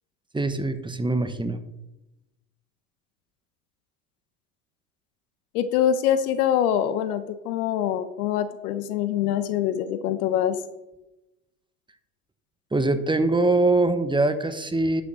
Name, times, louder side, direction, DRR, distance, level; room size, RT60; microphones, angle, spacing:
voice 1, 0.3-1.6 12.7-15.0, right 2 dB, 10° right, 10 dB, 1.0 m, -23 dB
voice 2, 5.5-10.6, left 10 dB, 90° left, 12 dB, 1.1 m, -24 dB
10.5 x 6.6 x 6.2 m, 0.98 s
supercardioid pair, 95°, 43 cm